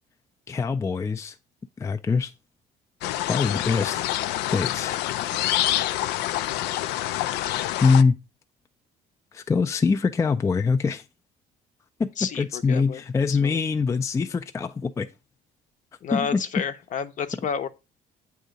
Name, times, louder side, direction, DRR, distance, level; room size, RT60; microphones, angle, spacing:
voice 1, 0.5-1.4 1.8-2.3 3.3-5.0 7.8-8.2 9.3-11.0 12.0-15.1 16.1-16.4, left 4 dB, 15° left, 0.3 m, -24 dB
sound 1, 3.0-8.0, left 14 dB, 90° left, 0.4 m, -27 dB
voice 2, 12.2-13.6 16.0-17.7, left 6 dB, 50° left, 0.7 m, -31 dB
8.0 x 2.8 x 5.0 m
cardioid pair, 110°, 17 cm